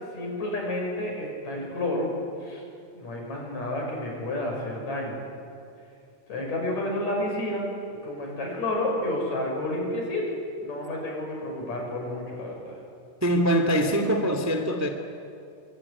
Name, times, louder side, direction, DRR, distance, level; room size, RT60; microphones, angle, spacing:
voice 1, 0.1-2.1 2.4-2.6 3.0-5.2 6.3-7.7 8.0-10.3 10.6-12.8, left 1 dB, 50° left, 0 dB, 7.5 m, -30 dB
voice 2, 13.2-14.9, equal, 5° right, 5 dB, 1.3 m, -23 dB
24.5 x 24.0 x 9.8 m, 2.5 s
omnidirectional pair, 4.0 m